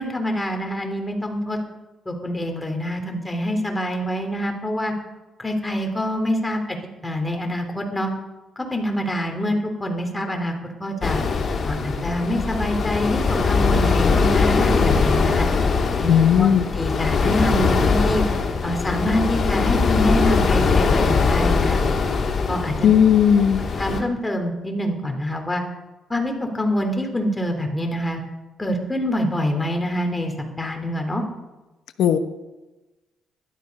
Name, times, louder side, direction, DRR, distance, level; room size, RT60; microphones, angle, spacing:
voice 1, 0.0-1.6 2.0-4.9 5.4-6.8 7.0-8.1 8.6-10.5 10.8-11.2 11.7-15.5 16.0-18.2 18.6-21.8 22.5-22.7 23.8-25.6 26.1-28.2 28.6-30.3 30.6-31.2, equal, 15° left, 4 dB, 3.3 m, -25 dB
sound 1, 11.0-24.0, left 4 dB, 50° left, 3.2 m, -21 dB
voice 2, 16.1-16.7 22.8-23.6 32.0-32.2, left 8 dB, 80° left, 8 dB, 1.0 m, -16 dB
16.0 x 12.5 x 5.4 m, 1.1 s
cardioid pair, 90°, 0 cm